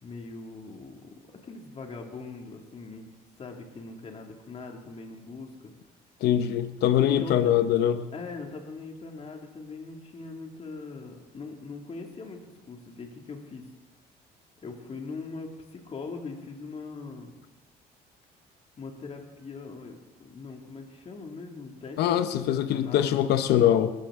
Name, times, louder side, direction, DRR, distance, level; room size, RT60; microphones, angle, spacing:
voice 1, 0.0-1.1 1.4-3.1 3.4-5.7 6.8-7.5 8.1-13.6 14.6-17.4 18.8-23.2, left 4 dB, 35° left, 2 dB, 2.2 m, -41 dB
voice 2, 6.2-8.1 22.0-23.9, left 10 dB, 75° left, 11 dB, 0.8 m, -23 dB
20.5 x 13.5 x 3.6 m, 1.1 s
cardioid pair, 110°, 17 cm